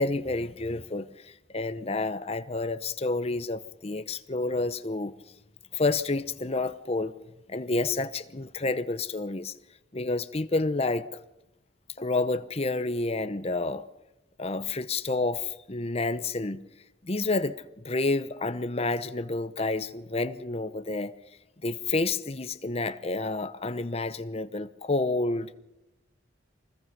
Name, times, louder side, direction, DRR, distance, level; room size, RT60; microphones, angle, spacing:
voice 1, 0.0-5.1 5.7-7.1 7.5-9.6 9.9-11.1 12.0-13.8 14.4-16.6 17.0-21.1 21.6-25.5, left 3 dB, 30° left, 0.8 m, -29 dB
24.5 x 20.0 x 5.3 m
head